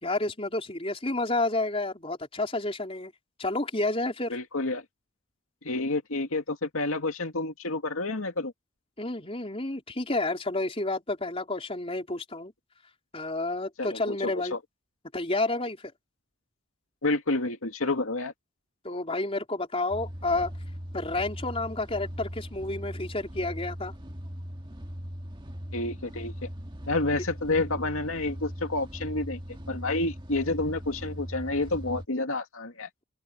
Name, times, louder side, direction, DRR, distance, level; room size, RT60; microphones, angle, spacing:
voice 1, 0.0-3.1 3.4-4.4 9.0-12.5 13.1-14.6 15.1-15.9 18.8-20.5 20.9-23.9, left 2 dB, 30° left, 4.1 m, -30 dB
voice 2, 4.3-4.8 5.6-8.5 13.8-14.6 17.0-18.3 25.7-26.5 26.9-29.4 29.7-32.9, left 2 dB, 90° left, 2.4 m, -29 dB
sound 1, 19.9-32.1, equal, 25° right, 1.9 m, -39 dB
open air
head